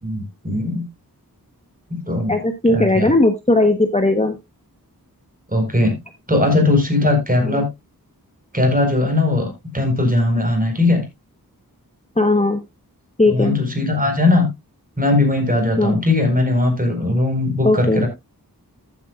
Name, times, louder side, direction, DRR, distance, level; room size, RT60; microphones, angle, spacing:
voice 1, 0.0-0.8 1.9-2.3 2.7-3.1 5.5-6.0 6.3-7.7 8.5-11.0 13.3-14.5 15.0-18.1, left 2 dB, 20° right, 3 dB, 4.5 m, -19 dB
voice 2, 2.3-4.3 7.4-7.6 12.2-12.6 13.2-13.6 15.8-16.0 17.6-18.1, left 2 dB, 20° left, 7 dB, 1.1 m, -17 dB
14.5 x 8.3 x 2.4 m, 0.21 s
wide cardioid pair, 55°, 37 cm